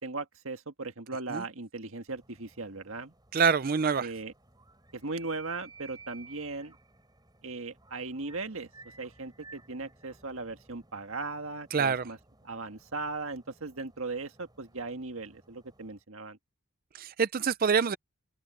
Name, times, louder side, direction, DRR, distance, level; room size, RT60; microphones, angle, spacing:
voice 1, 0.0-3.1 4.0-4.3 4.9-6.7 7.4-8.7 9.0-12.2 12.4-16.4, right 3 dB, 65° right, 1.7 m, -38 dB
sound 1, 2.1-16.0, right 4 dB, 20° right, 4.8 m, -56 dB
voice 2, 3.3-4.1 11.7-12.1 16.9-18.0, right 6 dB, 40° right, 0.5 m, -26 dB
open air
head